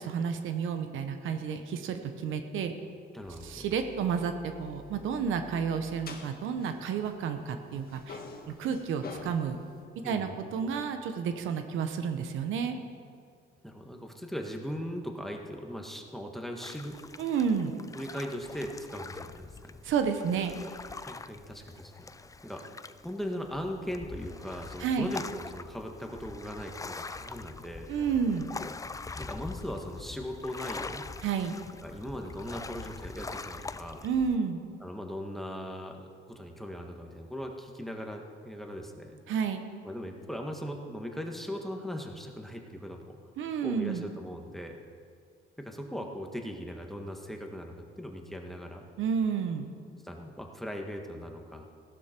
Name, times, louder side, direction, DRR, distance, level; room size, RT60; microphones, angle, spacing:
voice 1, 0.0-2.7 3.4-8.2 8.5-9.6 10.0-12.8 17.2-17.8 19.8-20.5 24.8-25.1 27.9-28.5 31.2-31.6 34.0-34.6 39.3-39.6 43.4-44.0 49.0-49.7, right 6 dB, 85° right, 7 dB, 1.1 m, -31 dB
voice 2, 3.1-3.7 10.0-10.3 13.6-17.0 17.9-19.8 21.0-22.1 22.4-22.8 23.0-27.9 29.1-31.0 31.8-34.0 34.8-39.2 39.8-43.2 43.6-44.8 45.6-48.8 50.0-51.6, equal, ahead, 2 dB, 1.6 m, -39 dB
sound 1, 3.2-7.5 7.7-9.8, left 4 dB, 50° left, 1.8 m, -48 dB
sound 2, 16.6-34.4, left 4 dB, 15° left, 0.4 m, -43 dB
16.0 x 12.0 x 4.5 m, 2.2 s
cardioid pair, 90°, 20 cm